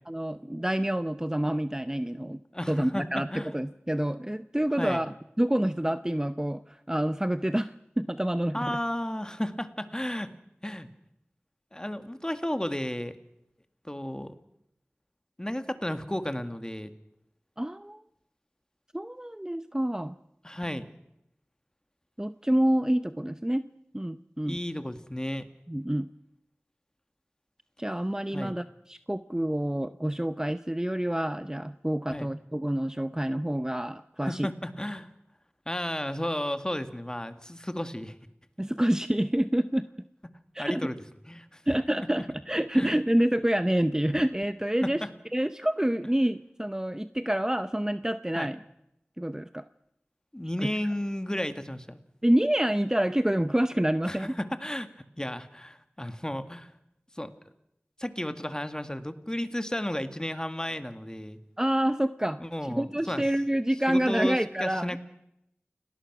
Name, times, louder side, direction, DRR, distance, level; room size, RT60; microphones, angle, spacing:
voice 1, 0.1-2.4 2.7-8.8 17.6-18.0 18.9-20.1 22.2-23.6 23.9-24.6 25.7-26.1 27.8-34.5 38.6-39.9 40.5-40.9 41.7-45.0 45.3-48.6 49.2-49.7 50.6-50.7 52.2-54.3 61.6-65.0, right 1 dB, 15° right, 11 dB, 0.7 m, -27 dB
voice 2, 2.5-3.5 4.8-5.0 8.5-10.3 10.6-10.9 11.7-13.1 13.8-14.3 15.4-16.9 20.4-20.8 24.4-25.5 28.3-28.5 32.1-32.3 34.3-35.1 35.6-38.1 40.6-40.9 41.3-41.6 42.7-43.0 44.8-45.1 48.3-48.5 50.3-52.0 54.1-54.9 55.2-56.7 57.1-57.3 58.0-61.4 62.4-63.2 63.9-65.0, left 1 dB, 15° left, 9 dB, 1.9 m, -33 dB
29.5 x 19.0 x 6.1 m, 0.82 s
wide cardioid pair, 50°, 4 cm